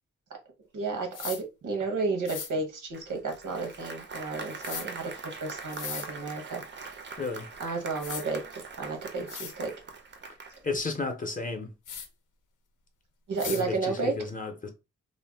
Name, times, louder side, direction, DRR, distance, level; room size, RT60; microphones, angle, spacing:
voice 1, 0.7-7.0 7.6-9.7 13.3-14.2, right 3 dB, 90° right, 0.9 m, -32 dB
sound 1, 1.1-1.4 2.3-2.5 4.6-4.9 5.7-6.1 7.5-7.6 8.0-8.2 8.9-9.0 9.3-9.5 11.9-12.1 13.4-13.6, left 7 dB, 90° left, 0.6 m, -37 dB
Applause, 2.9-10.8, right 4 dB, 40° right, 0.4 m, -43 dB
voice 2, 7.2-7.5 10.6-11.7 13.5-14.7, left 3 dB, 25° left, 0.5 m, -33 dB
2.5 x 2.1 x 3.3 m
wide cardioid pair, 170°, 30 cm